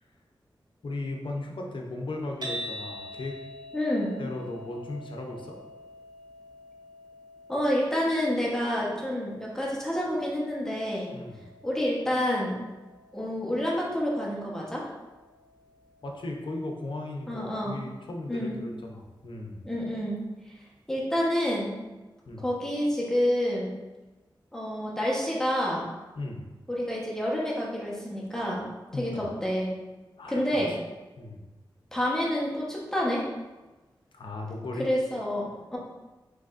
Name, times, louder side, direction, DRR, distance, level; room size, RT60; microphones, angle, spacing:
voice 1, 0.8-3.4 4.2-5.6 11.1-11.4 16.0-19.6 22.3-22.5 26.2-26.4 28.9-29.3 30.2-30.6 31.2-31.4 34.1-34.9, left 2 dB, 70° left, 1 dB, 0.7 m, -36 dB
sound 1, 2.4-18.6, equal, 55° right, 0.8 m, -46 dB
voice 2, 3.7-4.1 7.5-11.1 11.6-12.6 13.1-14.8 17.3-17.8 18.3-18.6 19.6-20.2 20.9-21.8 22.4-23.7 24.5-25.9 26.7-28.7 28.9-29.7 30.3-30.7 31.9-33.2 34.8-35.8, equal, 5° left, -5 dB, 1.1 m, -28 dB
5.0 x 4.0 x 2.5 m, 1.2 s
wide cardioid pair, 85°, 9 cm